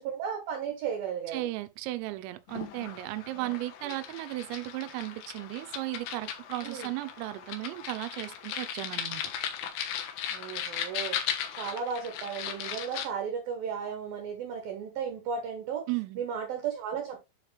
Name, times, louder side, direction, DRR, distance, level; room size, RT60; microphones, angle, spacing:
voice 1, 0.0-1.5 3.3-3.5 6.6-6.9 10.3-11.2 11.5-15.9 16.2-17.2, right 7 dB, 70° right, 2.3 m, -35 dB
voice 2, 1.3-9.2 15.9-16.2, right 18 dB, 85° right, 3.4 m, -35 dB
sound 1, 2.5-13.1, left 9 dB, 70° left, 2.8 m, -37 dB
9.6 x 4.5 x 3.3 m
omnidirectional pair, 5.9 m